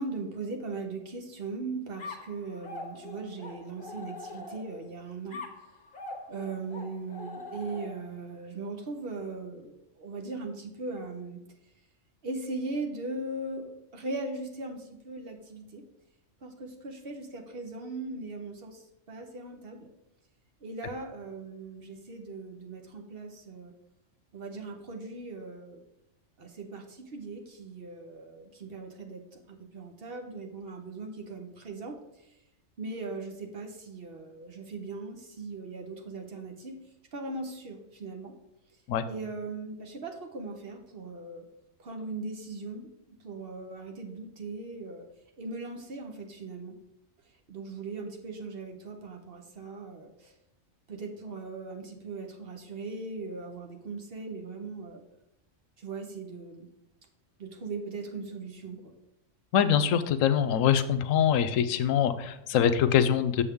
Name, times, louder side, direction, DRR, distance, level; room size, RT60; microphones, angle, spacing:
voice 1, 0.0-5.4 6.3-11.4 12.2-15.8 16.4-19.9 20.6-23.7 24.3-25.8 26.4-32.0 32.8-36.8 37.1-38.3 39.1-41.5 41.8-45.0 45.4-46.8 47.5-50.3 50.9-55.0 55.8-56.7 57.4-58.9, right 3 dB, 50° right, 3 dB, 1.1 m, -39 dB
sound 1, 2.0-4.9 5.3-8.2, left 2 dB, 45° left, 1.1 m, -43 dB
voice 2, 59.5-63.4, left 8 dB, 90° left, 12 dB, 1.0 m, -24 dB
7.0 x 6.8 x 3.6 m, 0.87 s
omnidirectional pair, 1.3 m